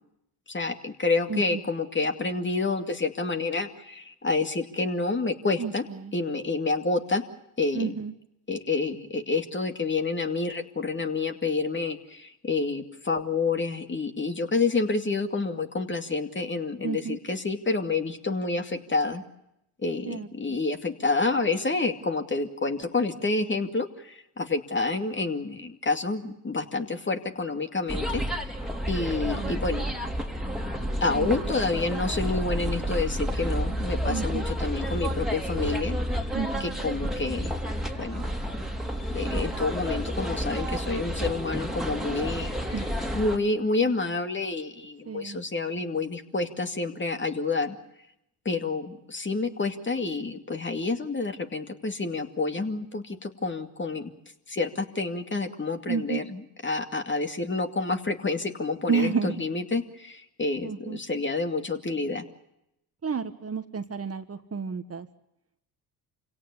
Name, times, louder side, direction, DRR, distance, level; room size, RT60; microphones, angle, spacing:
voice 1, 0.5-5.8 6.1-7.2 7.6-8.0 8.5-19.2 19.8-28.2 28.9-29.9 31.0-36.0 36.6-37.5 38.0-38.3 39.1-42.8 43.1-47.8 48.4-54.1 54.5-62.2, left 3 dB, 25° left, 7 dB, 2.5 m, -28 dB
voice 2, 1.3-1.6 5.6-6.1 7.7-8.1 16.8-17.2 20.1-20.6 29.3-29.7 31.1-31.4 34.1-34.4 36.3-36.9 42.7-42.9 45.1-45.4 55.9-56.2 58.9-59.4 60.6-61.0 63.0-65.1, right 5 dB, 30° right, 9 dB, 1.5 m, -31 dB
sound 1, 27.9-43.4, equal, ahead, 3.2 m, -30 dB
26.5 x 17.5 x 8.4 m, 0.84 s
supercardioid pair, 70°, 45 cm